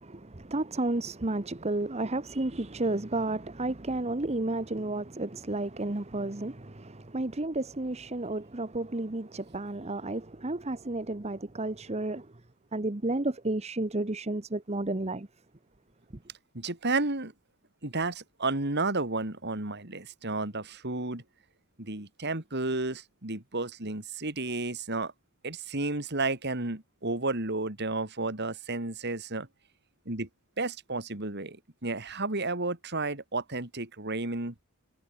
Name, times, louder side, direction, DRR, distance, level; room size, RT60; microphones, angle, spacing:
voice 1, 0.0-12.3 12.7-15.3, right 2 dB, 30° right, 1.1 m, -32 dB
voice 2, 16.5-17.3 17.8-21.2 21.8-25.1 25.4-29.5 30.1-30.3 30.6-34.5, right 3 dB, 50° right, 2.9 m, -32 dB
head